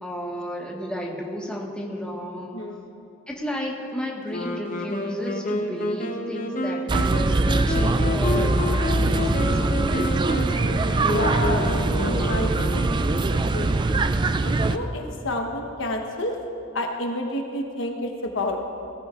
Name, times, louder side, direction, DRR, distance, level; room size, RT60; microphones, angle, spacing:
voice 1, 0.0-2.6 3.3-10.2, equal, 5° left, -3 dB, 1.5 m, -33 dB
voice 2, 2.5-3.0 10.9-13.9 14.4-16.4 16.7-18.6, left 1 dB, 65° left, 2 dB, 1.1 m, -30 dB
Wind instrument woodwind instrument, 4.3-13.3, left 2 dB, 40° left, 1.0 m, -29 dB
sound 1, 6.9-14.8, right 2 dB, 20° right, 0.3 m, -22 dB
19.5 x 14.5 x 2.5 m, 2.6 s
head